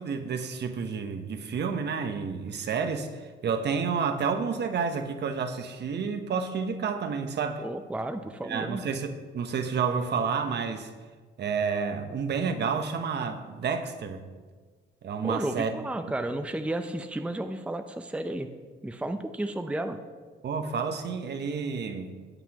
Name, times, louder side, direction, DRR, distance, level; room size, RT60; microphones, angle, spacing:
voice 1, 0.0-7.6 8.4-10.9 11.4-14.2 15.0-15.8 20.4-22.2, right 5 dB, 60° right, 7 dB, 1.0 m, -30 dB
voice 2, 7.6-8.8 15.2-18.5 18.8-20.0, right 1 dB, 5° right, 7 dB, 0.6 m, -32 dB
17.5 x 8.0 x 3.0 m, 1.4 s
cardioid pair, 90°, 20 cm